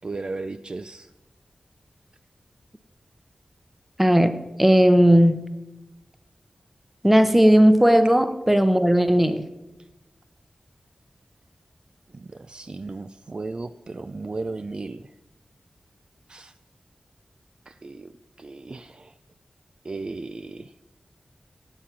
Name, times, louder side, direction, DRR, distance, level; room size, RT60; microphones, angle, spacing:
voice 1, 0.0-1.1 12.1-15.0 16.3-16.5 17.7-18.1 18.4-19.1 19.8-20.7, right 3 dB, 40° right, 12 dB, 0.4 m, -35 dB
voice 2, 4.0-5.4 7.0-9.4, equal, 5° right, 11 dB, 0.8 m, -17 dB
17.0 x 7.6 x 5.9 m, 1.0 s
wide cardioid pair, 105°, 2 cm